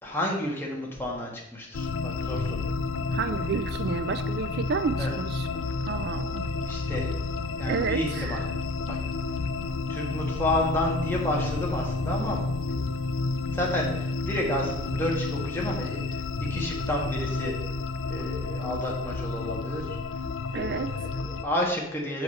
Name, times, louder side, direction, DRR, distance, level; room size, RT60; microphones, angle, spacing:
voice 1, 0.0-2.6 5.0-5.1 6.7-7.1 7.6-8.4 8.8-9.0 9.9-12.7 13.5-16.2 16.5-17.6 18.1-20.0 20.5-22.2, left 1 dB, 10° left, -3 dB, 1.6 m, -31 dB
sound 1, 1.7-21.4, left 3 dB, 70° left, 0.4 m, -31 dB
voice 2, 3.1-5.5 5.9-6.5 7.6-8.5 20.5-20.9, right 5 dB, 50° right, 11 dB, 0.3 m, -31 dB
6.5 x 4.7 x 6.5 m, 0.83 s
head